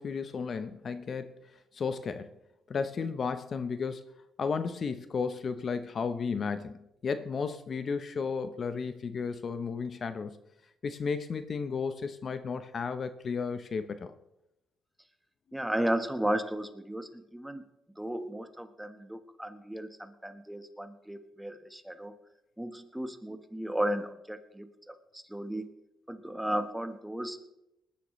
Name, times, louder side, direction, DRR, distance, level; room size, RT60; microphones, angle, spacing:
voice 1, 0.0-1.4 1.7-2.3 2.7-4.0 4.4-10.4 10.8-14.1, left 5 dB, 50° left, 0.8 m, -33 dB
voice 2, 15.5-17.6 18.0-22.1 22.6-25.7 26.1-27.5, right 1 dB, 5° right, 1.3 m, -34 dB
20.0 x 11.5 x 3.2 m
cardioid pair, 90°, 0 cm